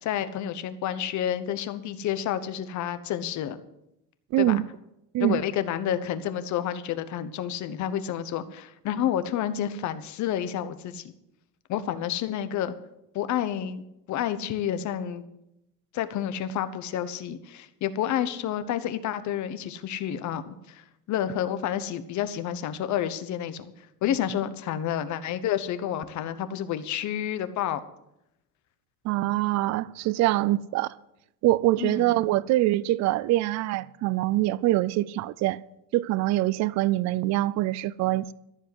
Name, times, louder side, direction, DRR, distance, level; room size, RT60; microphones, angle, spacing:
voice 1, 0.0-3.6 4.4-4.6 5.2-11.1 11.7-12.7 13.1-15.2 15.9-27.8 31.8-32.2, left 10 dB, 55° left, 1.0 m, -30 dB
voice 2, 4.3-4.6 5.1-5.4 29.0-30.9 31.4-35.6 35.9-38.3, right 16 dB, 55° right, 0.4 m, -24 dB
13.5 x 7.3 x 7.9 m
cardioid pair, 170°, 34 cm